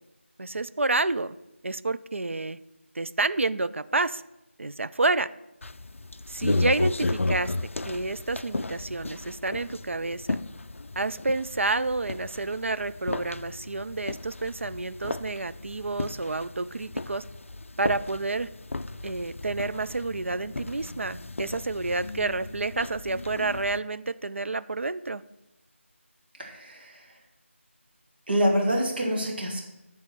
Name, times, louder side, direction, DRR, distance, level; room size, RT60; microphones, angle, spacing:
voice 1, 0.4-1.4 1.6-2.6 2.9-4.2 4.6-5.3 6.3-7.5 7.8-10.4 11.0-17.2 17.8-18.5 19.0-25.2, right 3 dB, 65° right, 14 dB, 0.4 m, -29 dB
sound 1, 5.6-23.8, left 2 dB, 70° left, 0.4 m, -34 dB
voice 2, 26.3-27.2 28.3-29.6, equal, 45° right, 0 dB, 1.8 m, -26 dB
10.5 x 3.6 x 6.0 m, 0.93 s
figure-of-eight pair, 170°, 7 cm